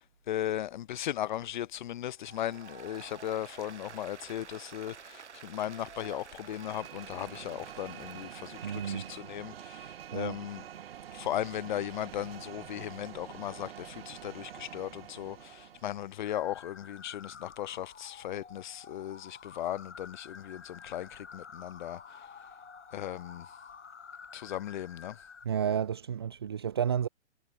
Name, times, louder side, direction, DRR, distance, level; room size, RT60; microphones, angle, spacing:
voice 1, 0.3-10.6 11.1-22.0 22.9-23.5 24.3-25.2, left 12 dB, 40° left, 0.6 m, -37 dB
Applause, 2.2-9.2, right 7 dB, 70° right, 1.0 m, -50 dB
sound 1, 6.3-16.2, right 10 dB, 55° right, 1.5 m, -47 dB
voice 2, 8.6-9.1 10.1-10.4 25.4-27.1, right 8 dB, 25° right, 0.3 m, -31 dB
sound 2, 16.2-25.5, left 6 dB, 75° left, 1.1 m, -50 dB
figure-of-eight pair, 120°, 36 cm